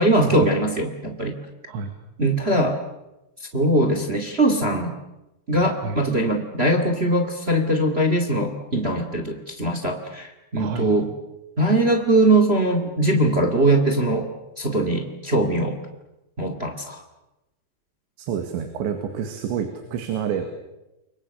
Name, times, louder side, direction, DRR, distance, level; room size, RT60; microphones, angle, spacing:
voice 1, 0.0-1.3 2.2-2.8 3.5-4.9 5.5-11.1 11.6-14.3 14.6-15.8 16.4-17.0, right 1 dB, 30° right, 5 dB, 1.0 m, -21 dB
voice 2, 10.6-10.9 18.2-20.5, right 7 dB, 85° right, 6 dB, 4.2 m, -28 dB
29.5 x 24.5 x 6.9 m, 0.96 s
omnidirectional pair, 5.1 m